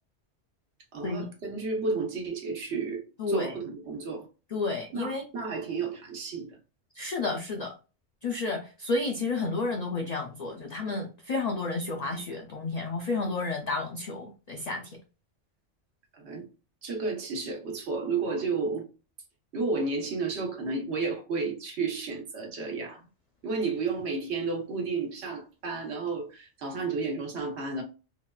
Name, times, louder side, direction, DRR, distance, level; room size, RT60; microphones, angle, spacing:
voice 1, 0.9-4.3 4.9-6.6 16.1-16.5 16.8-18.9 19.5-23.1 23.4-27.8, right 4 dB, 75° right, 1.2 m, -32 dB
voice 2, 3.2-3.5 4.5-5.2 7.0-7.7 8.2-15.0, left 3 dB, 55° left, 0.5 m, -31 dB
3.8 x 2.3 x 2.2 m
omnidirectional pair, 1.1 m